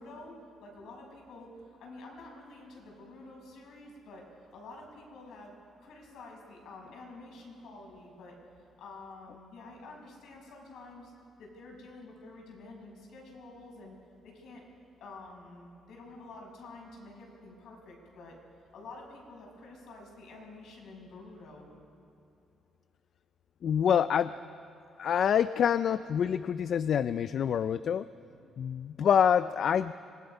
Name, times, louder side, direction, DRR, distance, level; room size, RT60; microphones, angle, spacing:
voice 1, 0.0-5.5 5.8-8.3 8.8-11.1 11.4-14.0 14.2-14.6 15.0-18.4 18.7-21.7, left 2 dB, 80° left, 0 dB, 6.2 m, -49 dB
voice 2, 23.6-24.4 25.0-28.1 28.6-29.9, left 8 dB, 60° left, 14 dB, 0.4 m, -26 dB
25.5 x 18.5 x 5.4 m, 2.7 s
cardioid pair, 90°, 0 cm